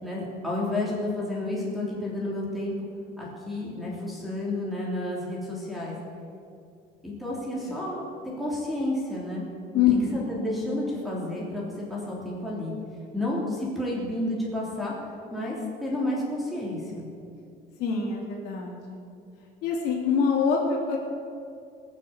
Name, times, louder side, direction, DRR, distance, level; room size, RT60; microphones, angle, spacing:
voice 1, 0.0-2.7 3.2-6.0 7.0-8.1 8.4-9.4 9.7-9.8 10.1-12.7 13.1-14.9 15.3-17.1, left 1 dB, ahead, -6 dB, 3.3 m, -31 dB
voice 2, 9.7-10.2 17.8-19.0 19.6-21.0, left 6 dB, 75° left, -1 dB, 3.2 m, -25 dB
20.0 x 6.7 x 8.2 m, 2.5 s
cardioid pair, 165°, 17 cm